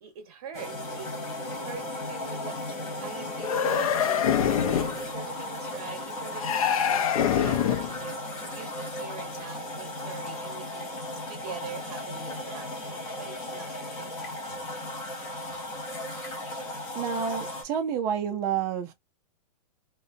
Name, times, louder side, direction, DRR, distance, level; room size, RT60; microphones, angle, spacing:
voice 1, 0.0-1.1 1.6-2.6 3.0-4.4 4.7-14.4, right 6 dB, 45° right, 0.8 m, -44 dB
sound 1, 0.5-17.6, left 1 dB, 20° left, 0.6 m, -36 dB
sound 2, 3.4-5.0 6.4-8.0, left 9 dB, 65° left, 0.5 m, -25 dB
voice 2, 16.9-18.9, right 7 dB, 15° right, 0.3 m, -29 dB
2.7 x 2.1 x 2.5 m
supercardioid pair, 175°, 19 cm